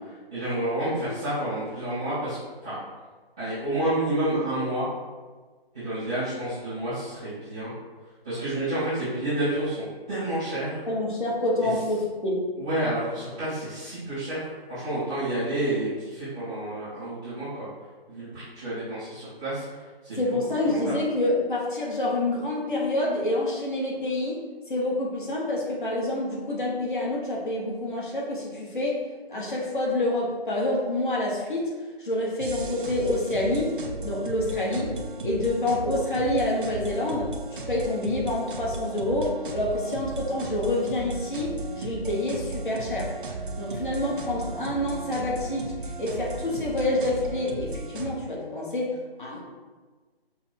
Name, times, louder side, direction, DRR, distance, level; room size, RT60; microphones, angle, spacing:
voice 1, 0.3-2.4 2.6-2.8 3.4-4.9 5.7-7.7 8.2-10.8 11.6-11.7 12.6-17.7 18.1-20.2 20.6-20.9, right 1 dB, 5° right, -21 dB, 0.5 m, -29 dB
voice 2, 10.9-12.5 20.2-29.0 29.3-31.7 32.0-33.8 34.0-35.0 35.2-43.1 43.6-45.7 46.0-48.9 49.2-49.4, left 1 dB, 50° left, -3 dB, 1.3 m, -27 dB
sound 1, 32.4-48.1, right 3 dB, 55° right, 0.6 m, -35 dB
5.3 x 2.2 x 4.4 m, 1.4 s
figure-of-eight pair, 150°, 31 cm